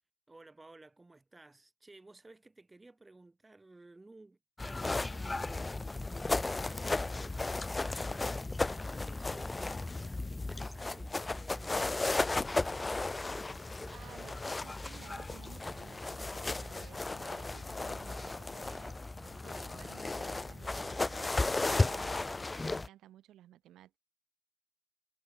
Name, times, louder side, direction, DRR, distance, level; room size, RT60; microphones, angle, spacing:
voice 1, 0.3-8.5 8.9-12.5, right 2 dB, 20° right, 2.1 m, -56 dB
sound 1, 4.6-22.9, left 2 dB, 20° left, 0.4 m, -35 dB
Bathtub (filling or washing), 8.1-16.1, left 7 dB, 55° left, 4.1 m, -68 dB
sound 2, 9.6-22.5, right 5 dB, 35° right, 1.1 m, -56 dB
voice 2, 13.9-24.0, right 13 dB, 80° right, 1.4 m, -57 dB
cardioid pair, 90°, 0 cm